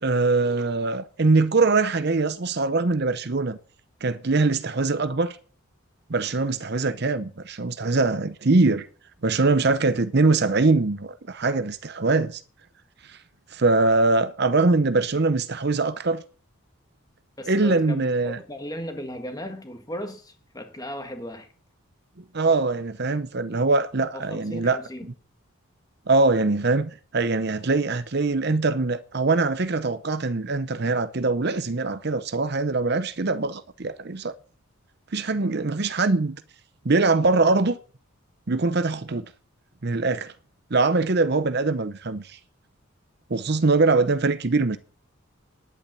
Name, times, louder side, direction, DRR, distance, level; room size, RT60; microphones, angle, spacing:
voice 1, 0.0-3.6 4.0-5.4 6.1-8.9 9.2-12.4 13.1-13.2 13.5-16.2 17.5-18.4 22.3-24.8 26.1-34.3 35.1-36.4 36.8-37.8 38.5-39.2 39.8-40.3 40.7-42.4 43.3-44.8, right 3 dB, 50° right, 0.7 m, -22 dB
voice 2, 17.4-21.5 24.1-25.1, equal, 15° left, 1.8 m, -36 dB
11.0 x 8.7 x 8.8 m
head